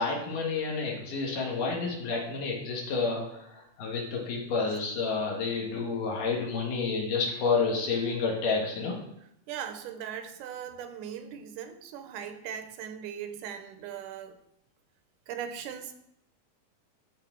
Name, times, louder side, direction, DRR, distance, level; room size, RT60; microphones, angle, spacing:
voice 1, 0.0-9.0, left 4 dB, 80° left, -1 dB, 3.2 m, -30 dB
voice 2, 9.5-14.4 15.3-15.9, right 8 dB, 80° right, 8 dB, 2.1 m, -39 dB
12.0 x 4.3 x 4.5 m, 0.77 s
omnidirectional pair, 3.7 m